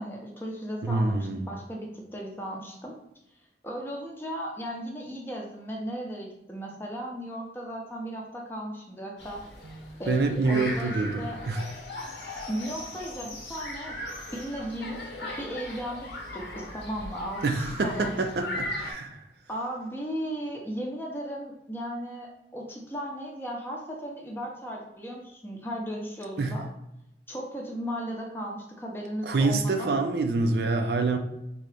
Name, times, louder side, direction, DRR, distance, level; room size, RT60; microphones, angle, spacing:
voice 1, 0.0-2.9 3.6-9.4 10.0-10.9 11.2-11.4 12.5-15.0 15.4-18.2 19.5-26.7 27.3-29.9, equal, 10° left, -1 dB, 0.6 m, -36 dB
voice 2, 0.8-1.5 9.6-11.6 17.4-19.2 26.4-26.6 29.2-31.2, right 3 dB, 65° right, 5 dB, 0.4 m, -26 dB
sound 1, 9.2-18.9, left 1 dB, 85° left, 1.0 m, -38 dB
3.8 x 2.8 x 3.3 m, 0.85 s
head